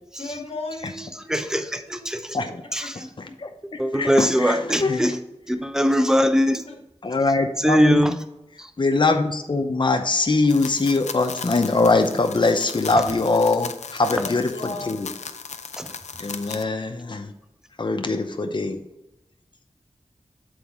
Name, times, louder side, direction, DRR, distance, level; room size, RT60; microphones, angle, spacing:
voice 1, 0.2-1.1 1.5-1.6 1.9-2.2 2.8-3.1 6.5-6.6 14.1-14.9, left 3 dB, 60° left, 1 dB, 1.4 m, -35 dB
voice 2, 1.3-2.4 2.7-2.9 3.8-5.1 5.5-6.6 7.6-8.2 8.6-8.7 15.8-15.9, equal, 5° right, 8 dB, 0.6 m, -21 dB
voice 3, 3.2-5.2 7.0-8.1 8.8-15.1 16.2-17.3 17.8-18.8, left 3 dB, 45° left, 5 dB, 0.6 m, -22 dB
sound 1, 10.5-16.6, left 5 dB, 85° left, 0.4 m, -37 dB
7.9 x 4.0 x 3.6 m, 0.89 s
wide cardioid pair, 60°, 12 cm